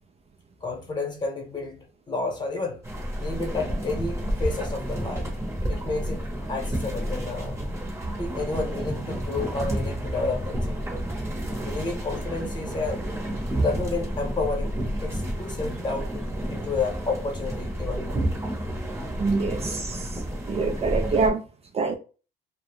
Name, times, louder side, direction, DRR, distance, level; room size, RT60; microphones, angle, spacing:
voice 1, 0.6-2.8 3.2-5.3 5.7-7.6 8.2-10.7 11.6-13.0 13.6-16.2 16.5-18.2, left 3 dB, 25° left, 1.0 m, -31 dB
sound 1, 2.8-21.3, right 1 dB, 15° right, 0.9 m, -30 dB
voice 2, 19.2-20.0 20.5-21.4 21.7-22.0, right 4 dB, 35° right, 0.4 m, -25 dB
2.3 x 2.1 x 3.3 m
cardioid pair, 110°, 17 cm